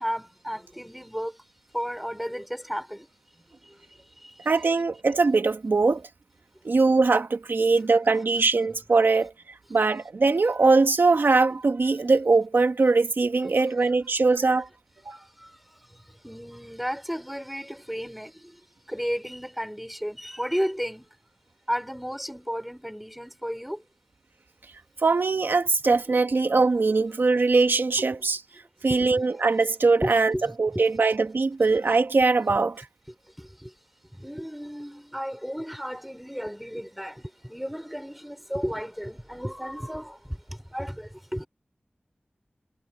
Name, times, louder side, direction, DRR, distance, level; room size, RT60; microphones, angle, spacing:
voice 1, 0.0-1.4 1.7-3.1 3.6-4.5 14.5-14.6 15.1-18.6 18.9-21.1 21.7-23.8 29.0-29.2 30.0-30.8 33.4-33.7 34.1-41.5, equal, ahead, 6.1 m, -34 dB
voice 2, 4.5-6.1 6.6-14.7 15.1-15.2 25.0-28.4 28.8-30.3 30.6-32.9, right 3 dB, 85° right, 1.9 m, -21 dB
wide cardioid pair, 40°, 3 cm